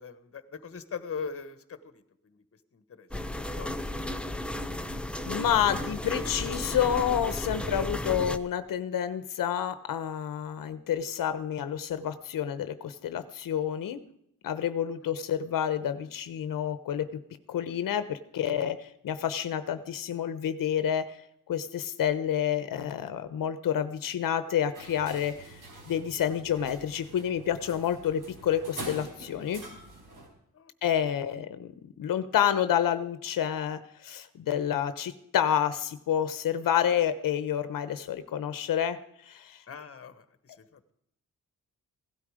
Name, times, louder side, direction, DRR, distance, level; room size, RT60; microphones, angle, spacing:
voice 1, 0.0-2.4 2.7-4.0 15.0-15.1 30.5-30.7 31.0-31.1 39.7-40.9, left 5 dB, 45° left, 12 dB, 1.3 m, -42 dB
sound 1, 3.1-8.4, left 1 dB, 5° left, 0.8 m, -34 dB
voice 2, 5.3-14.0 14.4-17.2 17.5-21.2 21.5-29.6 30.8-39.6, left 9 dB, 85° left, 12 dB, 0.9 m, -29 dB
sound 2, 24.7-30.3, right 2 dB, 75° right, 4.9 m, -45 dB
16.5 x 12.5 x 5.0 m, 0.75 s
wide cardioid pair, 130°, 32 cm